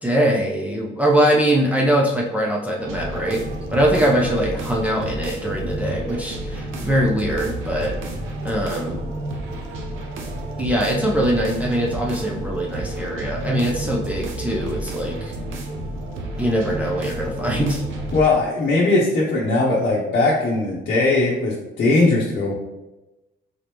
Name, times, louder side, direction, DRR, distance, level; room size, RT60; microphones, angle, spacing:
voice 1, 0.0-3.4 3.7-8.0 8.4-9.0 10.6-15.3 16.4-17.8, right 1 dB, 5° right, -3 dB, 0.6 m, -22 dB
sound 1, 2.8-18.2, right 1 dB, 90° right, 0.7 m, -30 dB
voice 2, 18.1-22.5, left 2 dB, 50° left, -5 dB, 0.9 m, -19 dB
3.9 x 3.0 x 3.4 m, 1.0 s
cardioid pair, 90°, 20 cm